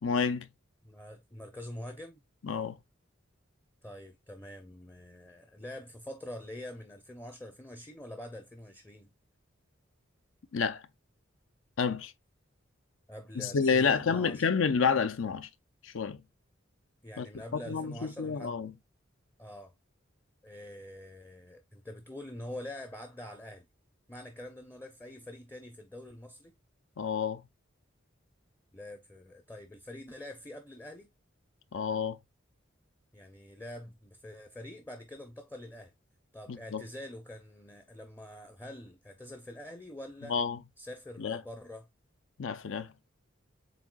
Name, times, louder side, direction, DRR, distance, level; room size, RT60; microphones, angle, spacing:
voice 1, 0.0-0.5 2.4-2.8 10.5-10.8 11.8-12.1 13.4-15.5 15.8-16.2 17.2-17.3 17.5-18.7 27.0-27.4 31.7-32.2 36.5-36.8 40.3-40.6 41.2-41.4 42.4-42.9, left 5 dB, 80° left, 0.6 m, -29 dB
voice 2, 0.8-2.2 3.8-9.1 13.1-14.4 17.0-18.6 19.4-19.7 20.4-23.7 24.1-26.5 28.7-31.1 33.1-35.9 36.3-40.4 40.8-41.9, left 1 dB, 10° left, 0.5 m, -45 dB
7.5 x 2.7 x 2.3 m
head